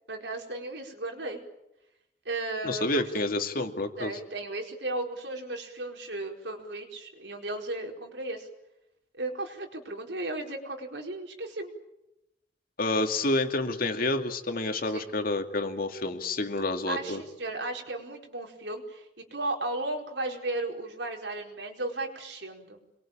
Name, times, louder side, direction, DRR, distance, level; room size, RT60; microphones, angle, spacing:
voice 1, 0.1-1.5 2.2-3.2 4.0-8.5 9.1-11.7 14.9-15.1 16.9-22.8, right 2 dB, 85° right, 2 dB, 4.6 m, -35 dB
voice 2, 2.6-4.1 12.8-17.2, left 2 dB, 55° left, 5 dB, 2.5 m, -29 dB
27.0 x 22.5 x 8.9 m, 0.90 s
head